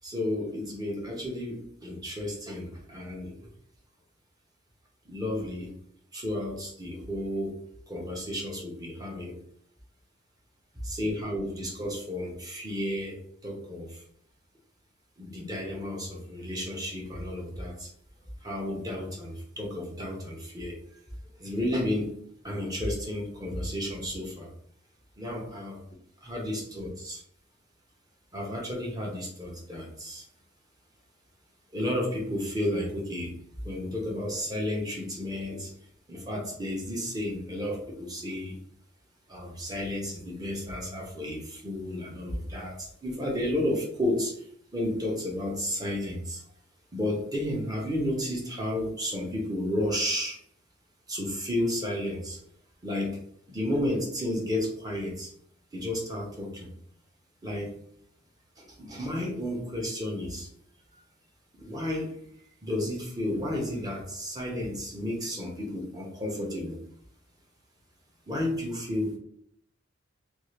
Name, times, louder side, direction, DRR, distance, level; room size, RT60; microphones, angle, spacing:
voice 1, 0.0-3.3 5.1-5.7 6.1-7.6 7.9-9.4 10.8-13.2 13.4-14.0 15.2-17.9 18.4-20.8 21.4-22.1 22.4-24.5 25.2-25.8 26.2-27.2 28.3-30.2 31.7-33.3 33.6-35.7 36.1-38.5 39.3-44.4 44.7-46.4 46.9-50.4 51.1-52.4 52.8-53.2 53.5-55.3 55.7-56.7 57.4-57.8 58.6-60.5 61.6-62.1 62.6-66.8 68.3-69.2, left 1 dB, 20° right, -1 dB, 0.7 m, -32 dB
2.7 x 2.4 x 3.1 m, 0.67 s
head